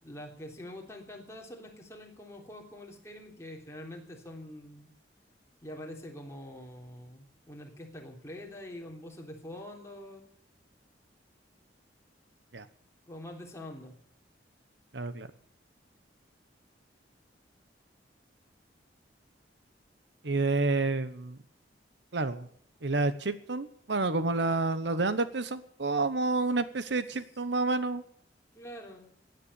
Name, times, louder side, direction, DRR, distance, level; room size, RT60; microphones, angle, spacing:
voice 1, 0.0-4.9 5.6-10.2 13.1-13.9 27.1-27.2 28.5-29.1, left 1 dB, 15° left, 0 dB, 3.3 m, -45 dB
voice 2, 14.9-15.3 20.2-21.4 22.1-22.5 22.8-28.0, right 3 dB, 75° right, 13 dB, 1.0 m, -29 dB
17.5 x 10.0 x 8.4 m, 0.62 s
head